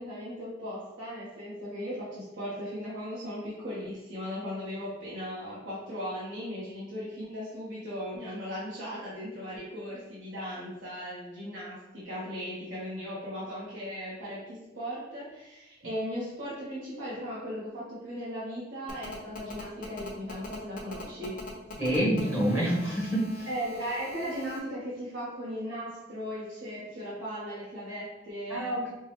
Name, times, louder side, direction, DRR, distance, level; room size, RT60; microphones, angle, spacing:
voice 1, 0.0-21.4 23.5-28.9, equal, 65° right, -9 dB, 0.9 m, -37 dB
Telephone, 18.9-24.6, left 2 dB, 45° left, 0.6 m, -44 dB
voice 2, 21.8-23.5 28.5-28.9, right 1 dB, 15° right, -6 dB, 0.8 m, -27 dB
4.4 x 2.0 x 3.0 m, 0.98 s
head